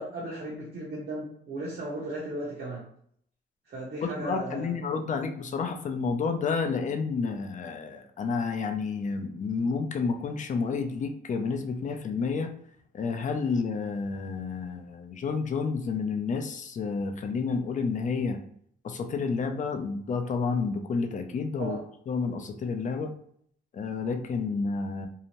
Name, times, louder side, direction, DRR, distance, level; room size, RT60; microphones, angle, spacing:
voice 1, 0.0-2.9 3.7-4.8 21.6-21.8, right 1 dB, 55° right, -5 dB, 0.8 m, -36 dB
voice 2, 4.0-12.5 12.9-18.4 18.8-21.8 22.1-23.1 23.7-25.1, left 5 dB, 40° left, 6 dB, 0.5 m, -30 dB
2.7 x 2.1 x 2.9 m, 0.65 s
cardioid pair, 90°, 20 cm